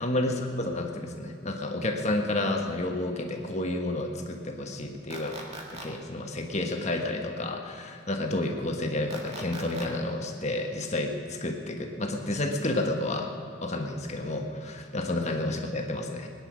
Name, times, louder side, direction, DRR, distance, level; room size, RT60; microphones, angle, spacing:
voice 1, 0.0-5.3 5.7-13.3 13.6-16.3, left 1 dB, 35° left, 3 dB, 1.4 m, -30 dB
sound 1, 5.1-5.9 9.1-9.9, right 2 dB, 30° right, 1.8 m, -40 dB
21.0 x 10.0 x 6.3 m, 2.4 s
head